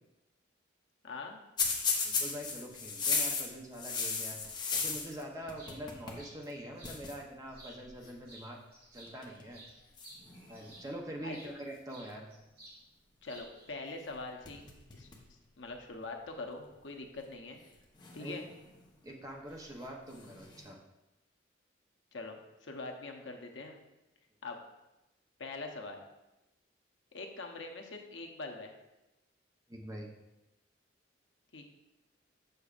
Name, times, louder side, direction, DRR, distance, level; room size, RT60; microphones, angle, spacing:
voice 1, 1.0-1.4 11.2-11.5 13.2-14.6 14.9-15.1 15.6-17.6 18.1-18.4 22.1-23.8 24.4-24.6 25.4-26.0 27.1-28.7 31.5-31.7, left 3 dB, 75° left, 3 dB, 0.8 m, -43 dB
sound 1, 1.6-5.2 5.5-6.2 6.5-6.6 6.8-7.1 8.0-8.3 9.1-9.4 10.0-11.0 14.0-14.1 14.5-15.3 15.7-15.8 16.7-16.8 18.0-18.8 20.1-20.6, left 4 dB, 25° left, 0.8 m, -35 dB
voice 2, 2.0-4.4 4.7-8.6 8.9-9.6 10.5-12.3 18.2-18.4 19.0-20.8 29.7-30.1, equal, 20° right, 0 dB, 0.7 m, -44 dB
sound 2, 4.7-4.9 5.3-7.0 7.5-8.0 8.3-11.5 11.9-12.8 13.1-13.7, right 2 dB, 50° right, 2.0 m, -55 dB
6.8 x 6.6 x 2.4 m, 0.97 s
head